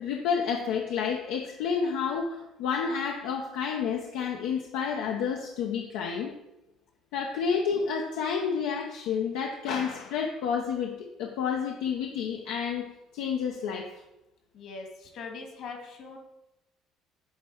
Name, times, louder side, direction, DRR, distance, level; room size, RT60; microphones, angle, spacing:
voice 1, 0.0-6.3 7.1-12.9 13.1-13.9, left 6 dB, 85° left, 1 dB, 0.6 m, -30 dB
voice 2, 14.5-16.2, left 4 dB, 60° left, 2 dB, 1.7 m, -41 dB
8.1 x 3.1 x 4.5 m, 0.92 s
supercardioid pair, 90°, 0 cm